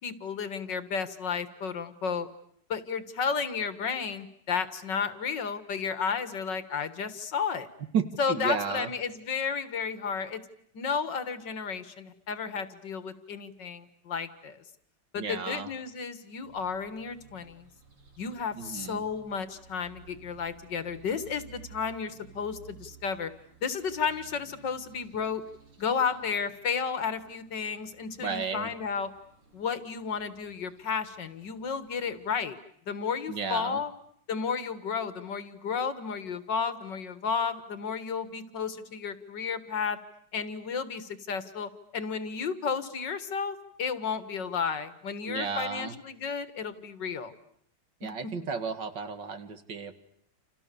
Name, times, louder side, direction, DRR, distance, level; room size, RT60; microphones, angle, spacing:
voice 1, 0.0-2.3 2.7-7.7 8.2-10.4 10.7-14.6 15.1-17.7 18.2-23.3 23.6-25.4 25.8-29.1 29.5-32.6 32.9-33.9 34.3-40.0 40.3-47.3 48.0-48.1, left 6 dB, 55° left, 12 dB, 2.3 m, -32 dB
voice 2, 7.9-8.9 15.2-15.7 18.6-19.0 28.2-28.7 33.3-33.8 45.3-46.0 48.0-49.9, right 5 dB, 55° right, 9 dB, 2.6 m, -33 dB
sound 1, 16.4-32.4, right 7 dB, 75° right, 5.3 m, -56 dB
29.5 x 28.5 x 7.0 m, 0.69 s
omnidirectional pair, 2.4 m